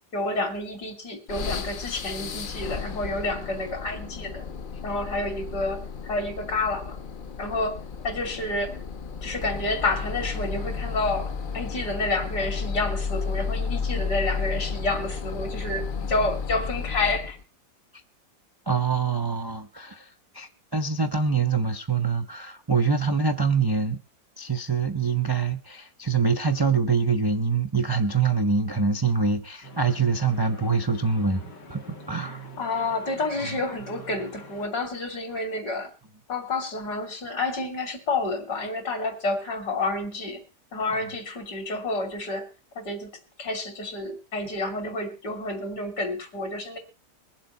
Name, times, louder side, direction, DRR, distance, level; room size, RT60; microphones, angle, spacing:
voice 1, 0.1-4.5 4.8-7.0 7.4-8.8 9.2-17.4 32.2-35.9 36.3-40.4 40.7-42.5 42.8-43.1 43.4-46.8, left 2 dB, 70° left, 3.5 m, -29 dB
sound 1, 1.3-17.4, left 5 dB, 55° left, 0.6 m, -33 dB
voice 2, 18.7-20.1 20.3-24.0 24.4-31.4 31.7-32.4, right 5 dB, 35° right, 0.3 m, -25 dB
sound 2, 29.6-34.7, right 1 dB, 90° left, 2.8 m, -44 dB
22.5 x 7.6 x 4.2 m
omnidirectional pair, 1.8 m